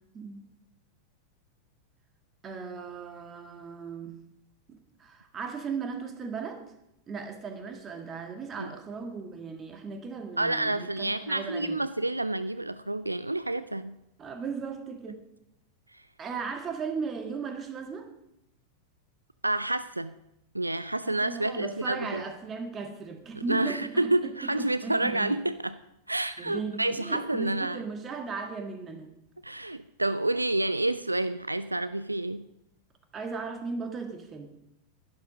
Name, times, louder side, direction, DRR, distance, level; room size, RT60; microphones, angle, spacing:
voice 1, 0.1-0.5 2.4-4.2 4.7-6.6 7.1-11.9 14.2-15.2 16.2-18.1 21.0-25.4 26.4-29.1 33.1-34.6, right 5 dB, 25° right, 6 dB, 1.8 m, -37 dB
voice 2, 10.4-14.0 15.9-16.0 19.4-20.1 20.5-22.2 23.5-25.7 26.1-27.8 29.4-32.4, right 2 dB, 85° right, 14 dB, 0.4 m, -29 dB
11.5 x 11.0 x 5.1 m, 0.83 s
figure-of-eight pair, 90°, 0 cm